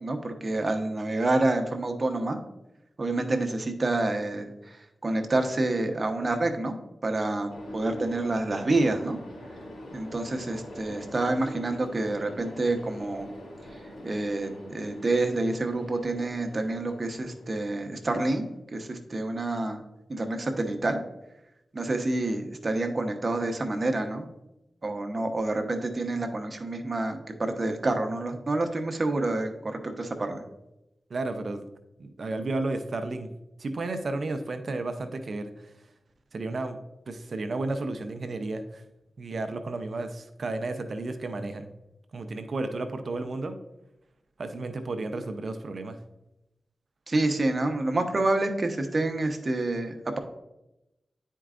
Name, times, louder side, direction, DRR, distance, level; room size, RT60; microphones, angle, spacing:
voice 1, 0.0-2.4 3.0-4.8 5.0-6.7 7.0-9.2 9.9-13.3 14.0-18.4 18.7-19.8 20.1-21.0 21.7-24.3 24.8-30.4 47.1-50.2, right 2 dB, 45° right, 5 dB, 1.0 m, -28 dB
sound 1, 7.5-18.6, equal, 90° left, 2.3 m, -44 dB
voice 2, 31.1-31.6 32.0-33.3 33.6-35.5 36.3-36.8 37.1-38.8 39.2-41.7 42.1-43.6 44.4-46.0, right 2 dB, 65° right, 8 dB, 0.6 m, -32 dB
10.0 x 4.5 x 2.5 m, 0.91 s
cardioid pair, 55°, 0 cm